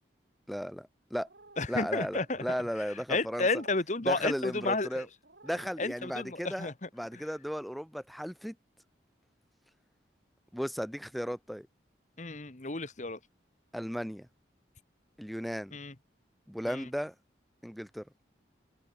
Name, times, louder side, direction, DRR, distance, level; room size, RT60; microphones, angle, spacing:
voice 1, 0.5-1.3 1.7-3.5 4.1-5.1 5.4-6.7 7.0-8.6 10.5-11.7 13.7-14.3 15.2-15.8 16.5-17.1 17.6-18.0, equal, ahead, 0.3 m, -35 dB
sound 1, 1.2-1.7 2.2-2.7 3.3-3.8 4.4-4.8 5.2-5.8, right 2 dB, 65° right, 4.8 m, -55 dB
voice 2, 1.6-2.4 2.9-5.1 5.8-7.3 12.2-13.2 15.7-15.9 16.7-16.9, left 3 dB, 40° left, 1.5 m, -32 dB
head